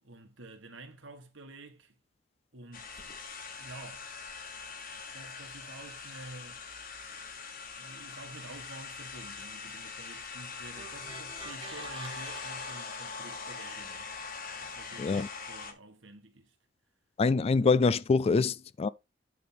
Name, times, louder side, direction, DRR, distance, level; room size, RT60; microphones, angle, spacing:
voice 1, 0.0-1.9 2.5-3.1 3.6-4.1 5.1-6.6 7.7-14.1 14.6-16.5, right 2 dB, 90° right, 1.8 m, -49 dB
sound 1, 2.7-15.7, left 5 dB, 50° left, 1.4 m, -42 dB
sound 2, 10.8-14.0, right 4 dB, 30° right, 1.3 m, -49 dB
voice 2, 17.2-18.9, left 4 dB, 30° left, 0.3 m, -25 dB
9.4 x 3.6 x 5.9 m
head